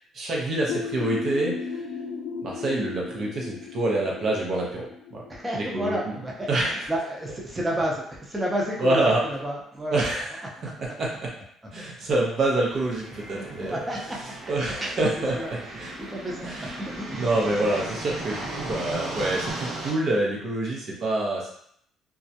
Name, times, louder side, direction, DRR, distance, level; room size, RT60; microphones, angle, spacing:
voice 1, 0.1-1.8 2.4-4.9 5.6-6.1 6.5-6.9 8.8-9.2 9.9-10.4 10.8-11.3 11.7-13.8 14.5-15.9 16.4-16.7 17.1-21.5, right 2 dB, 55° right, -3 dB, 0.7 m, -26 dB
sound 1, 0.7-6.2, left 5 dB, 85° left, 0.4 m, -35 dB
voice 2, 5.3-10.0 10.6-10.7 13.4-14.5 14.8-14.9 15.3-17.3, equal, 15° right, -4 dB, 0.6 m, -31 dB
sound 2, 12.7-19.9, right 1 dB, 80° right, 1.0 m, -36 dB
2.3 x 2.0 x 2.7 m, 0.67 s
cardioid pair, 95°, 0 cm